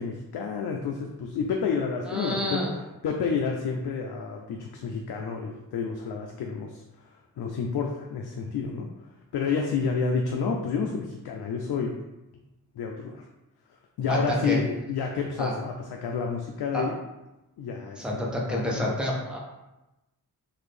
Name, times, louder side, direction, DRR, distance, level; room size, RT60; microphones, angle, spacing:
voice 1, 0.0-2.6 3.0-6.8 7.4-8.9 9.3-11.9 12.8-13.2 14.0-16.9 17.6-18.2 18.5-18.9, left 5 dB, 80° left, 1 dB, 0.5 m, -29 dB
voice 2, 2.0-2.8 14.1-14.6 15.4-15.5 16.7-16.8 18.0-19.4, left 1 dB, ahead, -2 dB, 0.7 m, -28 dB
3.9 x 2.5 x 3.3 m, 0.98 s
wide cardioid pair, 140°, 38 cm